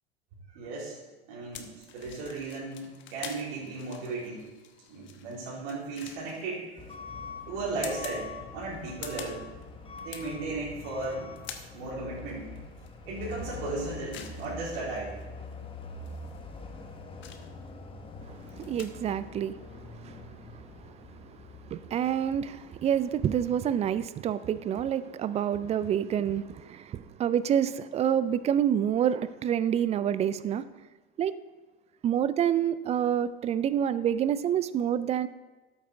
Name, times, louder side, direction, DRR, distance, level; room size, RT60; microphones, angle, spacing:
voice 1, 0.5-1.0 1.3-4.4 4.9-6.7 7.5-9.4 9.9-11.3 11.7-12.5 13.1-15.2, right 3 dB, 55° right, -7 dB, 3.6 m, -36 dB
sound 1, 1.5-18.9, left 8 dB, 35° left, 1.2 m, -48 dB
Truck / Alarm, 6.8-24.0, left 3 dB, 15° left, 1.2 m, -44 dB
voice 2, 18.3-20.2 21.7-30.7 31.2-31.4 32.0-35.3, right 9 dB, 20° right, 15 dB, 0.4 m, -28 dB
13.0 x 8.2 x 3.4 m, 1.2 s
hypercardioid pair, 90°, 31 cm